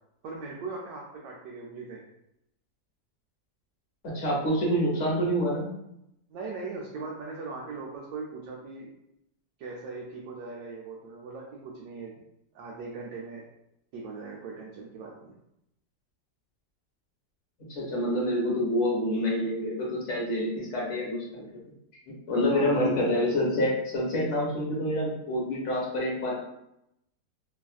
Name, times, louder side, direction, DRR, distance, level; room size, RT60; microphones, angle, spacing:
voice 1, 0.2-2.0 6.3-8.9 9.6-12.2 12.5-13.5 13.9-15.3 22.4-23.3, right 3 dB, 80° right, -3 dB, 1.2 m, -39 dB
voice 2, 4.1-5.7 17.7-21.6 22.1-26.3, equal, 50° left, -4 dB, 1.1 m, -27 dB
3.3 x 2.3 x 2.3 m, 0.81 s
omnidirectional pair, 1.8 m